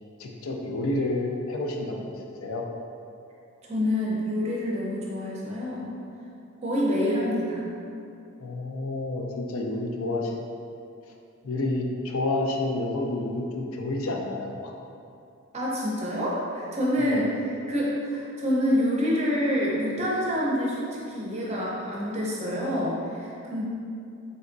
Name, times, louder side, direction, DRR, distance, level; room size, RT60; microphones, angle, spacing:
voice 1, 0.2-2.0 2.4-2.6 8.4-10.4 11.4-14.7 17.0-17.3, left 2 dB, 75° left, 1 dB, 0.4 m, -29 dB
voice 2, 3.6-5.9 6.6-7.7 15.5-23.6, equal, 30° right, -4 dB, 0.6 m, -27 dB
4.0 x 3.4 x 2.5 m, 2.6 s
head